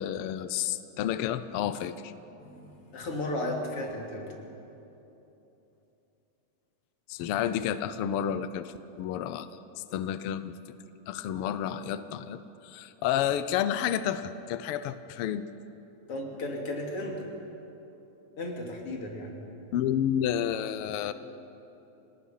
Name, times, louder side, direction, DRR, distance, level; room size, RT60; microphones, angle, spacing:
voice 1, 0.0-2.1 7.1-9.5 9.9-10.6 11.1-15.4 19.7-21.1, left 10 dB, 85° left, 12 dB, 1.2 m, -30 dB
voice 2, 2.4-4.3 16.1-17.3 18.4-19.3, left 1 dB, 50° left, 0 dB, 3.6 m, -34 dB
30.0 x 18.5 x 5.7 m, 3.0 s
omnidirectional pair, 3.4 m